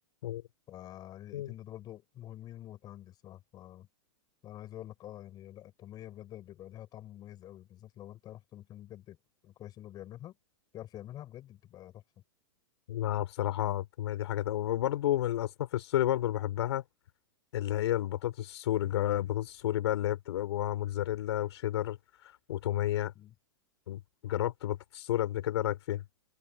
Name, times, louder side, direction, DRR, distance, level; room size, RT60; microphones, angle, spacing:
voice 1, 0.7-3.9 4.4-9.2 9.4-10.4 10.7-12.0 23.1-23.3, left 13 dB, 30° left, 6.9 m, -47 dB
voice 2, 12.9-16.8 17.5-22.0 22.2-23.1 23.9-26.0, left 13 dB, 70° left, 3.9 m, -31 dB
hypercardioid pair, 145°, 15 cm